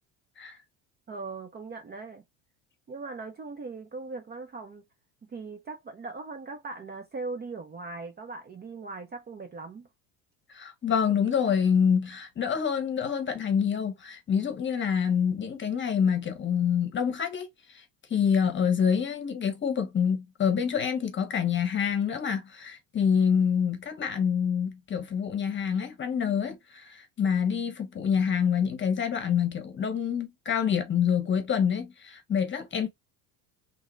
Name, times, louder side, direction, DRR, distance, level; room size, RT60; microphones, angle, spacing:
voice 1, 1.1-2.2 2.9-4.8 5.2-9.9, right 3 dB, 25° right, 0.6 m, -39 dB
voice 2, 10.5-17.8 18.1-32.9, left 7 dB, 25° left, 0.9 m, -27 dB
3.6 x 2.1 x 3.1 m
supercardioid pair, 115°, 42 cm